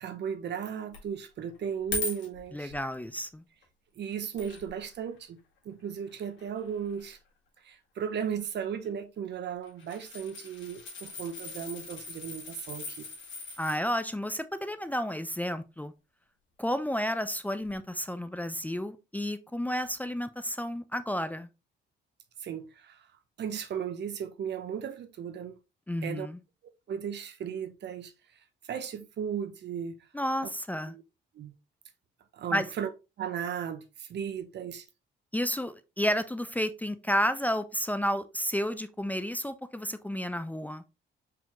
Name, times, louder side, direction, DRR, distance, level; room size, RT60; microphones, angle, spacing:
voice 1, 0.0-2.7 4.0-5.4 5.7-7.2 7.6-13.1 22.4-23.1 23.4-25.6 26.0-26.3 26.9-28.1 28.7-29.9 30.9-31.0 31.4-31.5 32.3-32.9 33.2-34.8, right 8 dB, 60° right, 0.7 m, -36 dB
sound 1, 0.9-1.0 1.5-2.9 3.6-3.7 4.4-4.9 5.2-5.3 6.1-7.1 8.3-8.6 8.8-8.9 9.5-13.8 17.6-17.7, left 3 dB, 65° left, 1.8 m, -40 dB
voice 2, 2.5-3.4 13.6-15.9 16.6-21.5 25.9-26.4 30.1-31.0 32.5-32.7 35.3-40.8, equal, 10° left, 0.4 m, -31 dB
4.7 x 3.7 x 2.9 m
cardioid pair, 90°, 20 cm